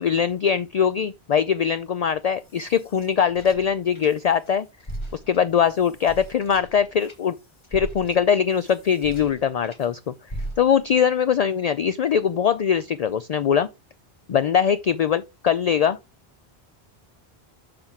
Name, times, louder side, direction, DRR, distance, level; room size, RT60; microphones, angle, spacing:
voice 1, 0.0-4.7 5.1-7.4 7.7-10.1 10.6-13.7 14.3-16.0, left 7 dB, 55° left, 0.4 m, -22 dB
sound 1, 2.2-4.5 4.8-9.9 10.3-11.0, right 1 dB, 30° left, 1.2 m, -39 dB
6.8 x 5.6 x 4.5 m
omnidirectional pair, 1.1 m